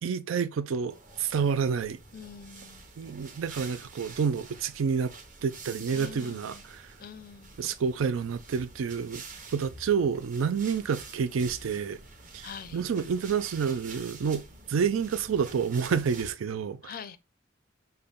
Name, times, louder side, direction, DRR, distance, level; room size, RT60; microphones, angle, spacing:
voice 1, 0.0-2.0 3.0-5.1 5.4-6.9 7.6-9.2 9.5-12.0 12.3-14.4 14.7-16.9, right 6 dB, 80° right, 0.4 m, -29 dB
sound 1, 0.9-16.3, right 3 dB, 40° right, 0.9 m, -47 dB
voice 2, 2.1-2.8 5.9-6.6 7.0-7.6 12.4-12.8 16.8-17.2, left 7 dB, 45° left, 0.4 m, -44 dB
5.4 x 2.2 x 3.5 m
head